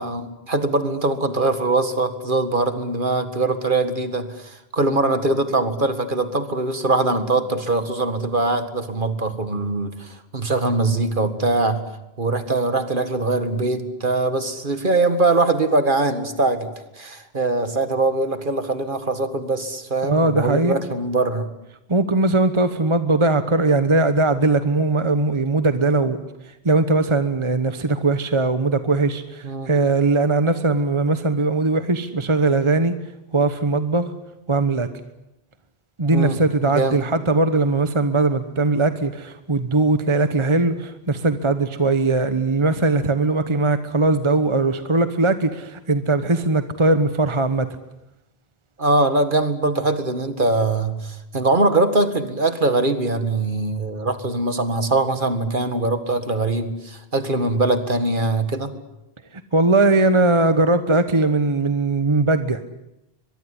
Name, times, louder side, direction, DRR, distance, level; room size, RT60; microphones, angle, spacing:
voice 1, 0.0-11.9 12.2-21.5 29.4-29.7 36.1-36.4 36.7-37.0 48.8-58.7, right 2 dB, 55° right, 10 dB, 2.2 m, -22 dB
voice 2, 20.0-20.8 21.9-26.2 26.5-32.9 33.3-34.0 34.5-34.9 36.0-47.7 59.5-62.6, right 3 dB, 30° right, 10 dB, 1.2 m, -20 dB
23.0 x 22.5 x 9.9 m, 0.88 s
omnidirectional pair, 1.1 m